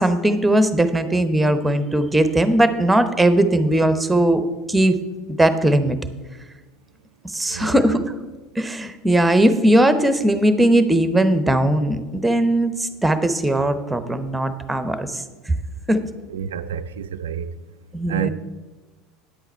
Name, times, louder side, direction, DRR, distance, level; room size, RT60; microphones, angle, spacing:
voice 1, 0.0-5.0 5.4-6.0 7.3-8.0 8.6-15.2 15.9-16.0 17.9-18.3, right 1 dB, 10° right, 0.8 m, -19 dB
voice 2, 7.5-7.8 16.3-17.5 18.1-18.3, right 9 dB, 75° right, 0.3 m, -28 dB
10.0 x 8.1 x 4.4 m
hypercardioid pair, 75°, 0 cm